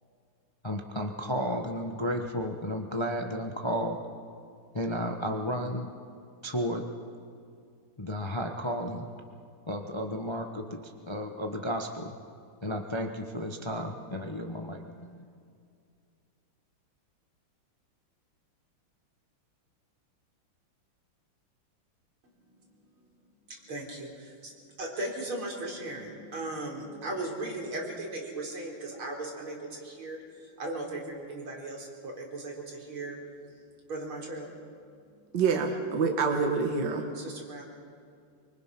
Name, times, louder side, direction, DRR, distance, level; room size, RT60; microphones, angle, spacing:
voice 1, 0.6-4.0 4.7-5.9 6.4-6.8 8.0-9.1 9.7-12.1 12.6-15.2, equal, 20° left, 3 dB, 0.9 m, -33 dB
voice 2, 22.6-24.5 24.8-33.2 33.9-34.6 35.1-35.4 37.1-37.6, right 2 dB, 75° right, -1 dB, 4.7 m, -38 dB
voice 3, 35.3-37.1, right 5 dB, 55° right, 3 dB, 2.2 m, -26 dB
25.0 x 24.5 x 6.0 m, 2.3 s
omnidirectional pair, 2.4 m